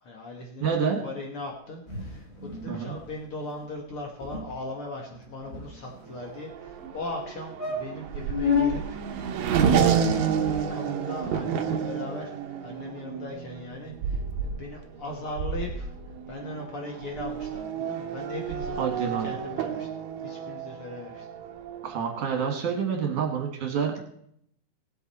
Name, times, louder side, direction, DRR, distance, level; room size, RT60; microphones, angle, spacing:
voice 1, 0.0-0.7 1.0-12.3 12.6-15.9 16.3-19.9 20.2-21.3, left 2 dB, 85° left, 1 dB, 1.2 m, -39 dB
voice 2, 0.6-1.0 2.7-3.0 18.8-19.3 21.8-24.1, right 6 dB, 60° right, 2 dB, 2.4 m, -28 dB
sound 1, 1.9-2.7 3.0-3.1 3.4-3.6 3.9-4.0 4.2-4.5 5.1-6.1 6.8-6.9 7.2-7.3 7.6-8.7 9.6-10.6, left 5 dB, 30° left, 1.8 m, -31 dB
Race car auto racing / Accelerating revving vroom, 6.1-22.3, right 7 dB, 80° right, 1.6 m, -30 dB
18.5 x 8.0 x 4.2 m, 0.69 s
omnidirectional pair, 4.8 m